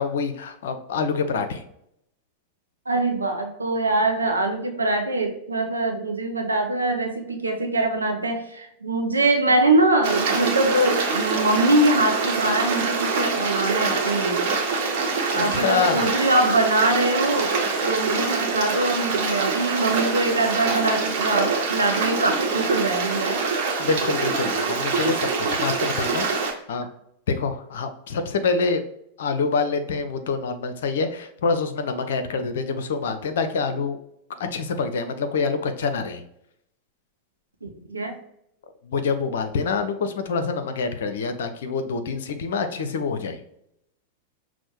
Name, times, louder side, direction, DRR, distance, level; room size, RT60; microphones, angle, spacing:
voice 1, 0.0-1.6 15.4-16.0 23.8-26.3 26.7-26.9 27.3-28.8 29.2-34.0 34.4-36.2 38.8-43.4, left 4 dB, 60° left, 8 dB, 0.5 m, -26 dB
voice 2, 2.9-14.9 15.3-17.5 17.8-23.4 37.6-38.2, right 2 dB, 80° right, 4 dB, 0.6 m, -23 dB
Stream, 10.0-26.5, right 4 dB, 50° right, 0.9 m, -25 dB
6.0 x 2.0 x 2.9 m, 0.76 s
figure-of-eight pair, 90°, 0 cm